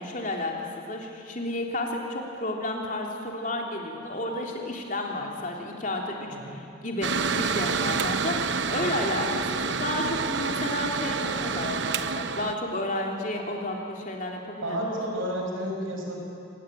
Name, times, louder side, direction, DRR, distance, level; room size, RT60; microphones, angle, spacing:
voice 1, 0.0-15.0, left 1 dB, 40° left, 0 dB, 3.4 m, -32 dB
Mechanical fan, 7.0-12.5, right 5 dB, 60° right, 0.9 m, -28 dB
voice 2, 14.6-16.2, equal, 90° right, 1 dB, 6.0 m, -31 dB
26.5 x 19.0 x 9.3 m, 2.6 s
head